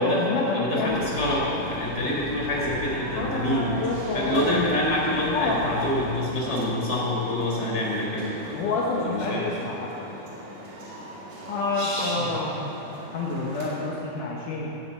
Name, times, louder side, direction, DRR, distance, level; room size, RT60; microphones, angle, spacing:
voice 1, 0.0-1.0 3.2-4.7 5.3-5.8 8.5-9.9 11.5-12.6 13.1-14.7, left 3 dB, 65° left, -3 dB, 2.8 m, -28 dB
voice 2, 0.5-3.7 4.1-8.6 8.9-9.5 11.7-12.4, left 1 dB, 20° left, -4 dB, 3.9 m, -27 dB
sound 1, 0.9-6.2, left 5 dB, 85° left, 1.3 m, -39 dB
sound 2, 1.0-13.9, right 1 dB, 50° right, 3.7 m, -40 dB
16.0 x 10.0 x 8.6 m, 3.0 s
omnidirectional pair, 4.1 m